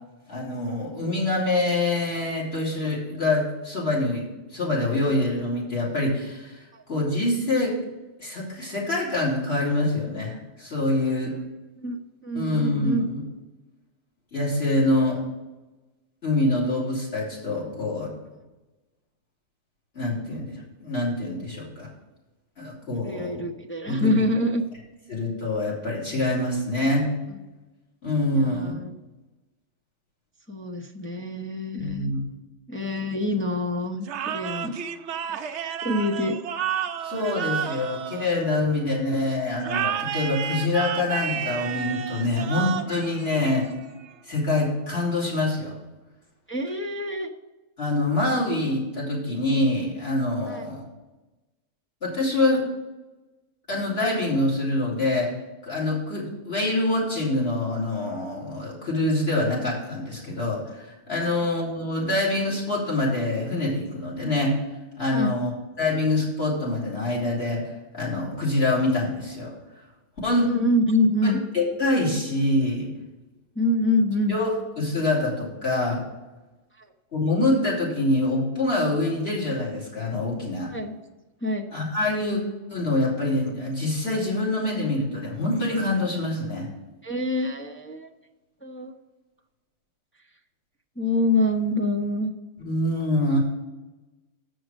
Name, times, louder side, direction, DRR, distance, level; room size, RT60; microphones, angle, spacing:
voice 1, 0.3-4.2 4.5-7.7 8.2-11.3 12.3-13.2 14.3-15.2 16.2-18.1 20.0-21.9 22.6-23.4 23.9-24.1 25.1-27.1 28.0-28.8 31.8-32.3 37.0-43.7 44.3-45.7 47.8-50.9 52.0-52.6 53.7-55.3 55.6-64.6 65.0-69.8 70.2-70.5 71.2-72.9 74.3-76.0 77.1-80.7 81.7-82.4 82.7-86.7 92.6-93.4, left 2 dB, 55° left, -5 dB, 3.3 m, -25 dB
voice 2, 12.2-13.1 23.0-24.6 28.4-28.9 30.5-32.1 32.7-34.7 35.2-35.6 35.8-36.4 46.5-47.3 50.5-50.7 61.2-61.3 65.1-65.4 70.5-71.4 73.6-74.4 80.7-80.9 81.4-81.7 87.0-88.1 88.6-88.9 91.0-92.3, left 1 dB, 15° left, 2 dB, 0.4 m, -26 dB
sound 1, 34.0-38.9 39.6-44.0, right 9 dB, 70° right, 0.9 m, -31 dB
7.6 x 6.4 x 6.2 m, 1.1 s
omnidirectional pair, 1.3 m